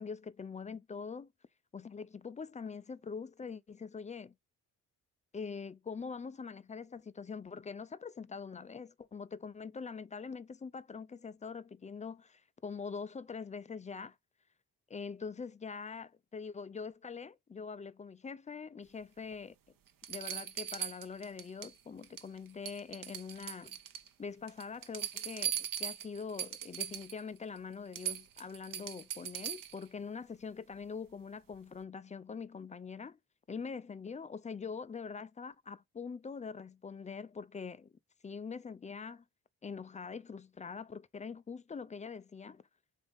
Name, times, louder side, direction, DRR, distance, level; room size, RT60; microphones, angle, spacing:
voice 1, 0.0-1.3 1.7-4.3 5.3-14.2 14.9-19.5 20.1-23.8 24.2-33.2 33.5-37.9 38.2-39.2 39.6-42.6, left 5 dB, 20° left, 0.3 m, -44 dB
sound 1, 19.3-19.4 20.0-21.7 22.0-22.4 22.7-24.1 24.5-27.2 27.6-27.7 27.9-29.8 31.5-31.6, right 10 dB, 50° right, 0.8 m, -39 dB
3.6 x 2.9 x 3.8 m
hypercardioid pair, 50°, 44 cm